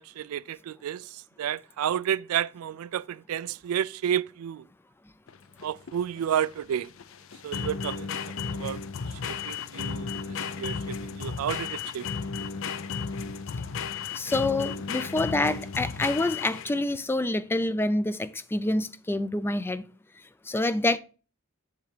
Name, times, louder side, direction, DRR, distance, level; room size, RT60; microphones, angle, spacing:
voice 1, 0.0-4.7 5.6-6.9 7.4-8.8 9.1-12.1, right 9 dB, 85° right, 0.3 m, -31 dB
sound 1, 5.3-16.9, left 5 dB, 65° left, 0.5 m, -34 dB
voice 2, 14.1-19.8 20.5-21.0, left 2 dB, 10° left, 0.3 m, -27 dB
7.4 x 3.4 x 5.0 m
head